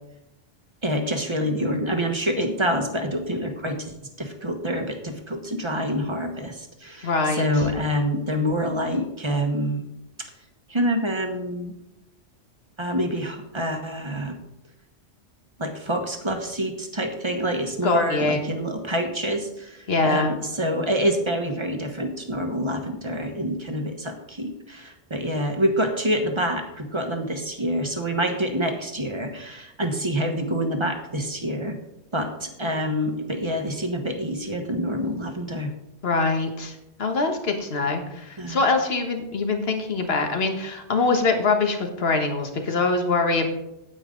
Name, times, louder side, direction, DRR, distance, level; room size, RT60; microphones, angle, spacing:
voice 1, 0.8-9.8 10.7-11.7 12.8-14.4 15.6-31.8 32.1-35.7 38.4-38.6, equal, 25° right, 5 dB, 1.2 m, -27 dB
voice 2, 7.0-7.5 17.8-18.4 19.9-20.3 36.0-43.5, left 3 dB, 60° left, 5 dB, 1.6 m, -23 dB
9.4 x 9.1 x 3.8 m, 0.88 s
omnidirectional pair, 1.2 m